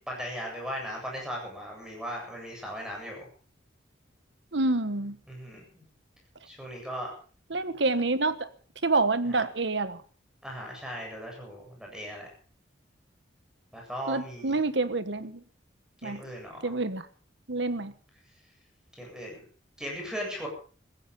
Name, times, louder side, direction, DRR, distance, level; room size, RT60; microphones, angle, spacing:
voice 1, 0.0-3.3 5.3-5.8 6.5-7.1 9.3-9.4 10.4-12.3 13.7-14.6 16.0-16.8 18.9-19.4 19.8-20.5, equal, 5° right, 8.0 m, -38 dB
voice 2, 4.5-5.2 7.5-8.5 8.8-10.0 14.1-15.4 16.0-16.2 16.6-17.1 17.5-17.9, right 3 dB, 70° right, 1.4 m, -27 dB
16.0 x 15.0 x 5.6 m
head